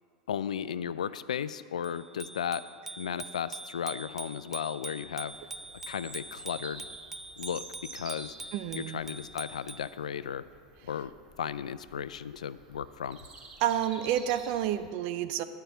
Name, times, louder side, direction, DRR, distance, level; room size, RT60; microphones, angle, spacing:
voice 1, 0.3-2.7 3.0-5.3 5.9-6.9 7.4-7.6 7.9-8.4 8.7-10.4 10.8-11.1 11.4-13.2, left 8 dB, 85° left, 15 dB, 0.3 m, -35 dB
Bicycle bell, 1.8-9.9, right 2 dB, 10° right, 0.4 m, -44 dB
Bird vocalization bird call bird song, 5.3-14.9, right 3 dB, 30° right, 3.1 m, -50 dB
voice 2, 8.5-9.0 13.6-15.4, right 11 dB, 55° right, 10 dB, 0.6 m, -29 dB
10.5 x 5.7 x 8.0 m, 2.2 s
hypercardioid pair, 95°, 4 cm